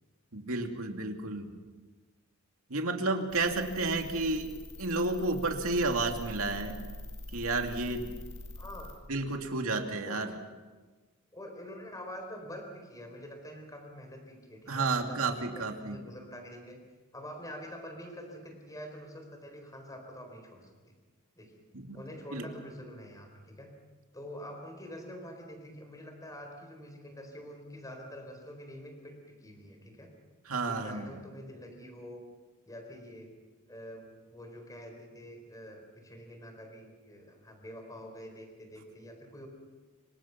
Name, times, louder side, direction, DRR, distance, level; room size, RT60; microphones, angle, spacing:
voice 1, 0.3-1.5 2.7-4.5 4.8-6.7 7.3-8.1 9.1-10.3 14.7-16.0 21.7-22.0 22.3-22.4 30.5-31.2, right 3 dB, 70° right, 3 dB, 2.5 m, -31 dB
sound 1, 3.3-8.9, left 1 dB, 65° left, 5.7 m, -44 dB
voice 2, 8.6-8.9 10.0-10.3 11.3-16.8 17.1-20.9 21.4-21.6 21.9-23.7 24.1-30.1 30.6-32.2 32.7-33.3 33.7-39.5, equal, 15° left, 4 dB, 4.3 m, -46 dB
26.5 x 25.0 x 6.0 m, 1.3 s
head